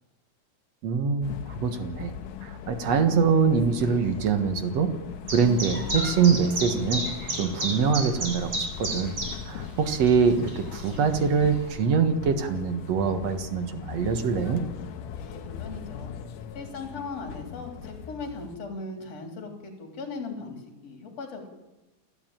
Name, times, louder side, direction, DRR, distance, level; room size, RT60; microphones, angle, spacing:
voice 1, 0.8-2.1 2.4-4.9 5.3-7.1 7.4-9.2 9.5-14.6, right 6 dB, 55° right, 8 dB, 2.2 m, -24 dB
sound 1, 1.2-18.6, left 8 dB, 70° left, 2.5 m, -39 dB
Chirp tweet, 5.3-11.7, right 1 dB, 30° right, 6.0 m, -34 dB
voice 2, 15.1-16.1 16.5-21.5, left 3 dB, 45° left, 3 dB, 4.6 m, -38 dB
29.0 x 11.5 x 9.1 m, 1.0 s
omnidirectional pair, 4.3 m